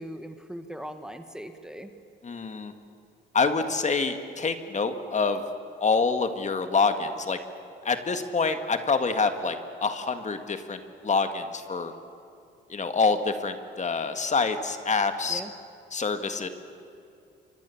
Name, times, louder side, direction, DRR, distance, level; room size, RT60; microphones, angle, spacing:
voice 1, 0.0-1.9 15.3-15.5, equal, 5° right, 7 dB, 1.6 m, -39 dB
voice 2, 2.2-2.7 3.3-5.4 5.8-7.4 7.8-11.9 12.7-15.4 15.9-16.5, left 4 dB, 35° left, 8 dB, 1.9 m, -26 dB
27.5 x 24.0 x 7.2 m, 2.5 s
cardioid pair, 90°, 20 cm